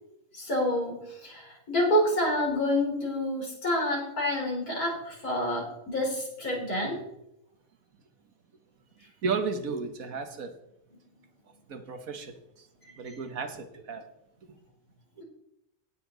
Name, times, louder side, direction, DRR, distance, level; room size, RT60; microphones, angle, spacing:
voice 1, 0.3-7.0 12.8-13.2, left 1 dB, 85° left, -2 dB, 4.5 m, -28 dB
voice 2, 9.2-10.5 11.7-12.7 13.0-14.0 15.2-15.3, right 4 dB, 70° right, 7 dB, 1.6 m, -33 dB
17.5 x 6.8 x 3.9 m, 0.82 s
omnidirectional pair, 1.5 m